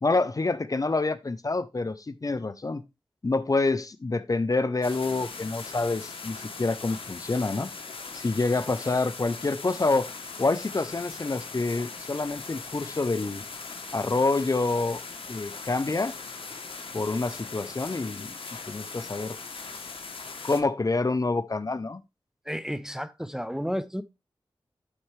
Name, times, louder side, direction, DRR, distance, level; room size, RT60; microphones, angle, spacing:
voice 1, 0.0-2.8 3.2-7.7 8.1-10.1 10.4-13.4 13.9-15.0 15.3-16.1 16.9-18.3 18.7-19.4 20.4-22.0, left 3 dB, 40° left, 0.6 m, -27 dB
sound 1, 4.8-20.6, left 4 dB, 80° left, 1.1 m, -40 dB
voice 2, 22.5-24.0, equal, 5° right, 0.6 m, -32 dB
11.5 x 4.4 x 3.2 m
cardioid pair, 55°, 9 cm